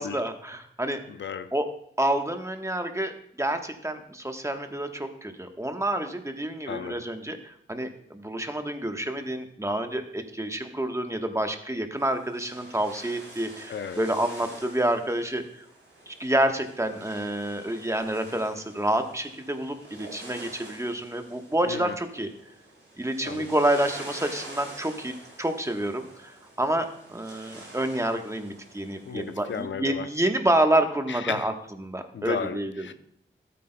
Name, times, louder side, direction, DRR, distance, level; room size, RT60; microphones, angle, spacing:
voice 1, 0.0-1.0 1.5-1.7 2.0-15.6 16.1-22.3 23.0-25.1 25.4-31.5 31.8-32.8, right 1 dB, 15° right, 1.1 m, -28 dB
voice 2, 1.1-1.5 6.7-7.0 13.7-14.0 21.7-21.9 23.2-23.5 29.1-30.1 31.1-31.5 32.1-32.9, left 6 dB, 65° left, 0.5 m, -34 dB
sound 1, 12.0-29.6, right 2 dB, 90° right, 3.1 m, -47 dB
13.5 x 8.5 x 2.2 m
cardioid pair, 40°, 21 cm